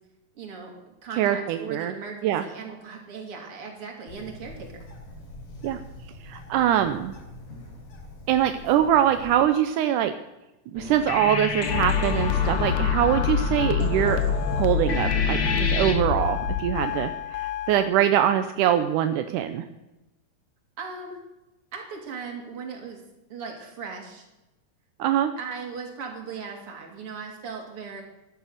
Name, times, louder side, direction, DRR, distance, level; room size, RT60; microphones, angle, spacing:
voice 1, 0.4-4.9 20.8-21.2 21.7-23.0 23.3-24.2 25.4-28.0, right 5 dB, 40° right, 2 dB, 3.4 m, -38 dB
voice 2, 1.2-1.9 2.2-2.4 5.6-5.8 6.2-7.1 8.3-10.1 10.7-19.6 25.0-25.3, right 11 dB, 80° right, 8 dB, 1.9 m, -23 dB
Bird, 4.1-9.4, left 1 dB, 85° left, 5.9 m, -44 dB
sound 1, 10.8-15.9, left 4 dB, 45° left, 1.6 m, -30 dB
sound 2, 11.7-17.9, left 7 dB, 70° left, 2.2 m, -26 dB
14.5 x 11.5 x 6.6 m, 1.0 s
omnidirectional pair, 4.2 m